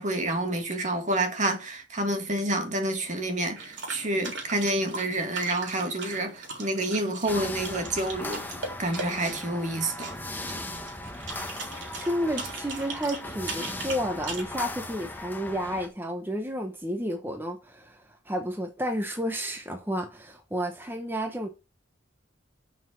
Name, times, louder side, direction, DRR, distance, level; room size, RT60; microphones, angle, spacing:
voice 1, 0.0-8.5 8.8-10.1, right 1 dB, 40° right, 1.7 m, -28 dB
sound 1, 3.6-14.5, right 3 dB, 70° right, 3.6 m, -40 dB
sound 2, 7.3-15.9, left 2 dB, 10° left, 1.1 m, -38 dB
voice 2, 11.9-21.5, equal, 10° right, 1.0 m, -31 dB
7.2 x 5.8 x 6.2 m
head